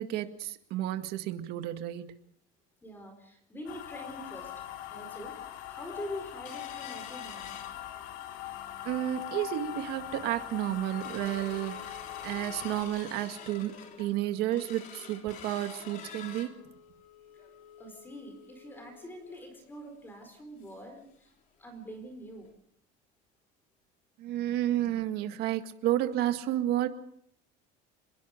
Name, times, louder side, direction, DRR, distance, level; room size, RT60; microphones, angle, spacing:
voice 1, 0.0-2.1 8.8-16.5 24.2-26.9, right 13 dB, 60° right, 7 dB, 2.0 m, -31 dB
voice 2, 2.8-7.6 17.8-21.3 21.6-22.5, equal, 10° left, 6 dB, 4.5 m, -44 dB
sound 1, 3.7-12.8, left 12 dB, 85° left, 3.1 m, -42 dB
sound 2, 6.4-8.3 8.7-8.8 9.2-9.5 10.0-10.1 10.4-21.0 21.3-21.4 21.7-21.9 22.4-22.5, left 6 dB, 45° left, 3.6 m, -48 dB
26.5 x 22.0 x 5.2 m, 0.69 s
cardioid pair, 165°, 19 cm